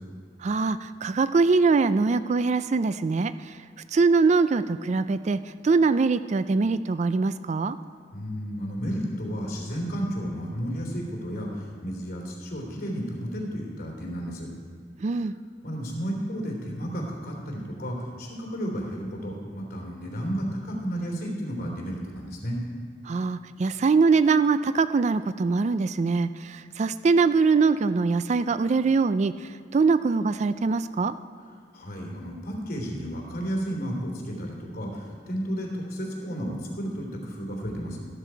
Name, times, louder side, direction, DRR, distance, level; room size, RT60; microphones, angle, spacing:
voice 1, 0.4-3.3 3.9-7.8 15.0-15.3 23.1-29.3 29.7-31.1, right 4 dB, 40° right, 13 dB, 0.4 m, -23 dB
voice 2, 8.1-14.5 15.6-22.6 31.7-38.0, equal, 55° left, 0 dB, 3.0 m, -32 dB
13.0 x 12.0 x 4.6 m, 2.2 s
head